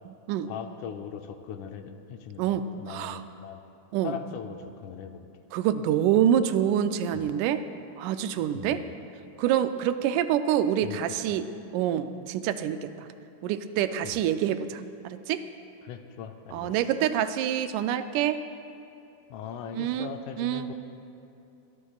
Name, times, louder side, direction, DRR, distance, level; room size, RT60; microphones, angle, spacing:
voice 1, 0.5-3.6 4.0-5.2 7.1-7.3 8.5-8.9 10.8-11.4 14.0-14.2 15.8-16.8 19.3-20.7, left 8 dB, 80° left, 7 dB, 2.1 m, -40 dB
voice 2, 2.4-3.2 3.9-4.1 5.5-7.6 8.0-8.8 9.4-11.5 11.7-13.1 13.4-15.4 16.5-18.4 19.7-20.1 20.4-20.7, right 10 dB, 90° right, 10 dB, 2.1 m, -26 dB
22.5 x 13.0 x 2.4 m, 2.7 s
omnidirectional pair, 3.5 m